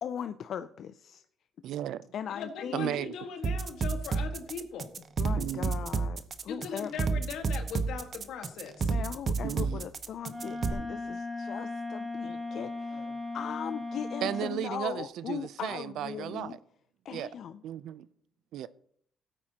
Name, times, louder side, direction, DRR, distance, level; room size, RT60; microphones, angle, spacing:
voice 1, 0.0-1.2 2.1-3.0 5.2-6.9 8.9-13.1 13.3-16.6 17.0-17.6, left 8 dB, 65° left, 0.4 m, -39 dB
voice 2, 1.6-2.1 2.7-3.1 5.4-5.9 9.4-9.9 14.2-16.6 17.1-17.4 17.6-18.1 18.5-18.7, right 11 dB, 80° right, 0.5 m, -35 dB
voice 3, 2.3-4.9 6.5-8.9 12.2-13.2, left 6 dB, 85° left, 1.6 m, -40 dB
sound 1, 3.4-10.7, right 4 dB, 45° right, 0.8 m, -30 dB
Wind instrument woodwind instrument, 10.2-14.6, left 2 dB, 20° right, 2.0 m, -37 dB
16.5 x 8.8 x 2.9 m
cardioid pair, 90°, 0 cm